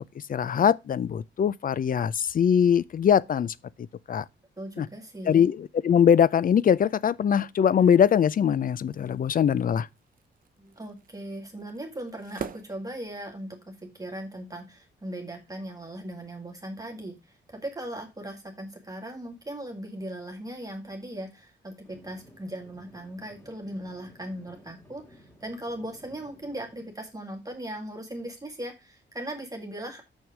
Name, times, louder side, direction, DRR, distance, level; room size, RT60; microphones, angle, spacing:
voice 1, 0.0-4.2 4.8-4.9 5.2-9.9, left 8 dB, 45° left, 0.5 m, -22 dB
voice 2, 4.6-5.5 10.6-30.0, right 1 dB, 20° right, 2.0 m, -38 dB
sound 1, 7.6-13.6, right 7 dB, 45° right, 0.7 m, -46 dB
sound 2, 21.8-26.9, equal, 10° left, 3.0 m, -55 dB
6.5 x 6.2 x 5.9 m
cardioid pair, 105°, 20 cm